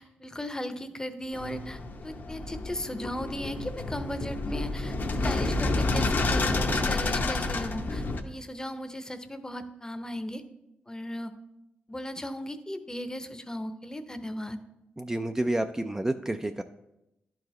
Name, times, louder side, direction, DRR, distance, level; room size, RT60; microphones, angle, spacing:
voice 1, 0.0-5.0 5.2-10.4 10.9-11.3 11.9-14.6, left 1 dB, 15° left, 9 dB, 0.7 m, -37 dB
sound 1, 1.3-8.2, left 2 dB, 55° left, 0.8 m, -29 dB
voice 2, 15.0-16.6, right 1 dB, 15° right, 7 dB, 0.4 m, -29 dB
11.0 x 4.7 x 3.2 m, 0.88 s
cardioid pair, 60°, 4 cm